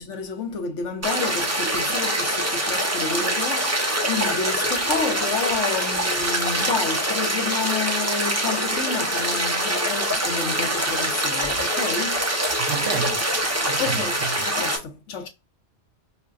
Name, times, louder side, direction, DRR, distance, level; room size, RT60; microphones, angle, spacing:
voice 1, 0.0-12.4 13.8-15.3, left 5 dB, 80° left, 1.2 m, -30 dB
sound 1, 1.0-14.8, right 1 dB, 15° right, 0.6 m, -24 dB
voice 2, 12.6-14.5, right 6 dB, 85° right, 1.0 m, -31 dB
5.4 x 2.2 x 2.4 m
omnidirectional pair, 1.2 m